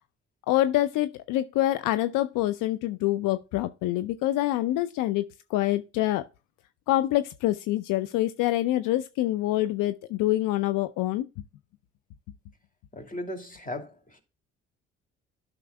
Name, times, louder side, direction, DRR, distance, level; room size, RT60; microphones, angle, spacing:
voice 1, 0.5-6.2 6.9-11.3, left 15 dB, 70° left, 0.6 m, -26 dB
voice 2, 12.9-14.2, left 1 dB, 25° left, 2.5 m, -37 dB
12.5 x 6.0 x 2.2 m
hypercardioid pair, 45°, 34 cm